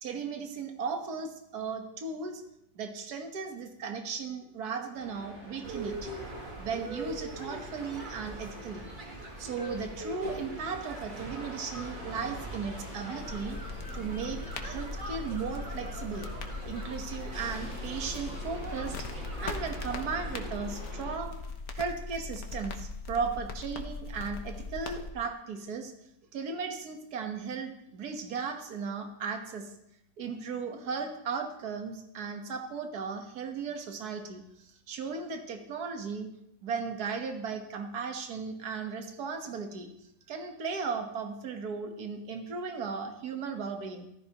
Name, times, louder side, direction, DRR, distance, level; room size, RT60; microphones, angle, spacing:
voice 1, 0.0-2.4 2.8-6.1 6.6-8.9 9.4-13.6 13.9-16.3 16.7-21.4 21.7-25.9 26.3-29.7 30.2-36.3 36.6-39.9 40.3-44.1, right 5 dB, 60° right, 4 dB, 1.8 m, -36 dB
sound 1, 4.9-16.9 17.3-21.1, equal, 85° right, 6.7 m, -47 dB
sound 2, 5.6-20.5, right 2 dB, 30° right, 1.6 m, -42 dB
sound 3, 13.2-25.1, left 4 dB, 60° left, 1.4 m, -40 dB
14.5 x 14.5 x 3.0 m, 0.78 s
omnidirectional pair, 1.9 m